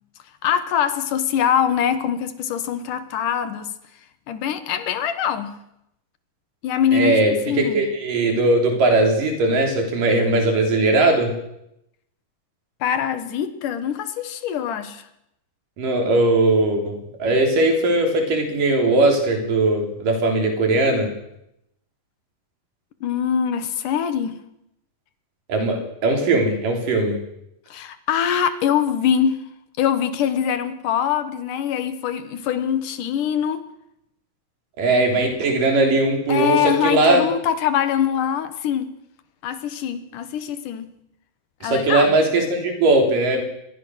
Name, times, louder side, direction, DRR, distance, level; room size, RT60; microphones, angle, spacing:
voice 1, 0.4-3.7 4.3-5.5 6.6-7.2 7.5-7.9 12.8-15.0 23.0-24.4 27.7-29.4 29.8-33.6 36.3-38.9 39.4-40.9 41.6-42.2, left 9 dB, 70° left, 11 dB, 2.7 m, -23 dB
voice 2, 6.9-11.3 15.8-21.1 25.5-27.2 34.8-37.3 41.6-43.4, right 2 dB, 75° right, 3 dB, 5.2 m, -19 dB
24.0 x 21.5 x 6.4 m, 0.82 s
omnidirectional pair, 3.9 m